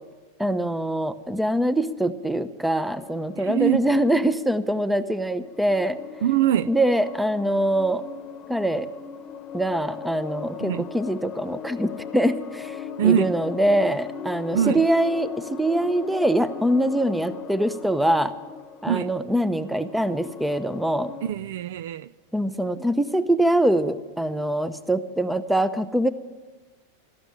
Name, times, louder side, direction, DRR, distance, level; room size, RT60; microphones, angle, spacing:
voice 1, 0.4-6.0 6.7-8.0 8.5-8.9 9.5-12.7 13.0-18.3 18.8-21.1 22.3-26.1, right 1 dB, 5° right, 0.7 m, -23 dB
sound 1, 2.9-4.9 5.3-21.3, left 7 dB, 30° left, 1.1 m, -39 dB
voice 2, 3.4-3.9 6.2-6.7 10.6-10.9 13.0-13.4 14.5-14.8 18.9-19.1 21.2-22.1, right 10 dB, 70° right, 0.4 m, -23 dB
13.5 x 12.0 x 8.9 m
hypercardioid pair, 120°, 0 cm